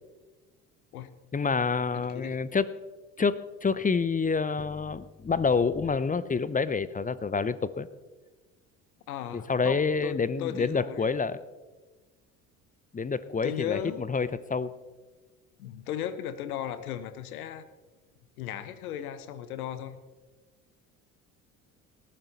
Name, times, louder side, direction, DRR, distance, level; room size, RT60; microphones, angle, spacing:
voice 1, 1.3-2.7 3.2-7.9 9.3-11.4 12.9-14.7, left 5 dB, 20° left, 16 dB, 0.7 m, -28 dB
voice 2, 9.1-11.1 13.4-14.0 15.6-17.6 18.4-20.0, left 10 dB, 80° left, 13 dB, 1.1 m, -36 dB
19.0 x 13.0 x 4.2 m, 1.2 s
hypercardioid pair, 60°, 43 cm